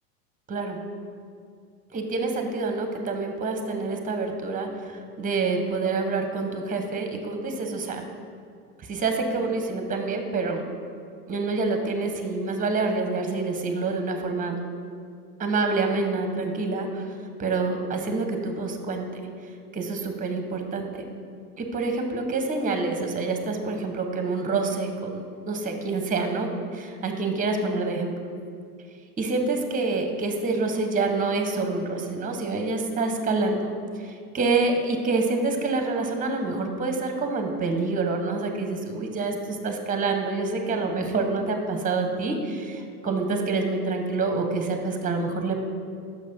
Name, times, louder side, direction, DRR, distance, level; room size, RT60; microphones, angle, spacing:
voice 1, 0.5-0.8 1.9-8.0 8.9-10.6 11.3-14.5 15.4-17.1 17.4-19.1 19.7-21.0 21.6-28.1 29.2-33.7 34.0-45.6, right 3 dB, 15° right, 5 dB, 0.9 m, -27 dB
6.3 x 5.3 x 5.4 m, 2.3 s
hypercardioid pair, 90°, 46 cm